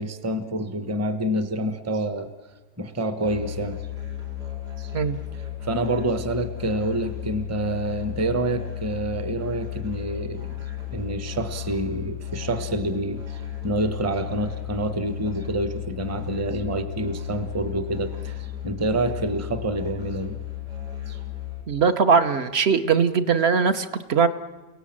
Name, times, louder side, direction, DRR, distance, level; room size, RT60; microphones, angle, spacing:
voice 1, 0.0-2.3 2.8-3.8 4.8-4.9 5.6-10.6 10.9-20.4 21.1-21.2, right 1 dB, 10° right, 9 dB, 0.8 m, -27 dB
Musical instrument, 3.2-21.6, left 11 dB, 80° right, 4.8 m, -34 dB
voice 2, 21.7-24.3, right 6 dB, 45° right, 10 dB, 1.0 m, -20 dB
29.5 x 17.5 x 7.5 m, 1.2 s
omnidirectional pair, 1.8 m